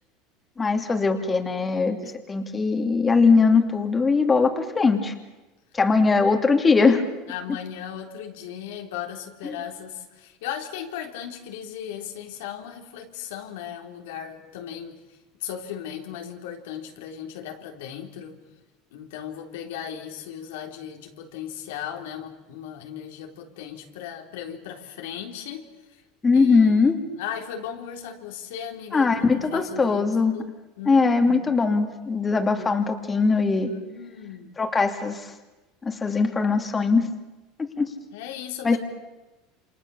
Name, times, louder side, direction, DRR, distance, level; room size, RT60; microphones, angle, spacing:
voice 1, 0.6-5.1 5.7-7.0 26.2-27.0 28.9-30.4 30.9-33.7 34.6-35.3 35.8-37.1 37.8-37.9 38.6-38.8, left 4 dB, 20° left, 4 dB, 2.8 m, -21 dB
voice 2, 7.3-15.0 15.4-18.4 18.9-26.0 26.3-26.9 27.2-30.1 30.3-30.5 30.8-31.5 32.6-32.7 33.6-34.5 38.1-38.8, left 9 dB, 85° left, 3 dB, 3.7 m, -37 dB
28.5 x 26.5 x 7.1 m, 1.1 s
supercardioid pair, 125°, 0 cm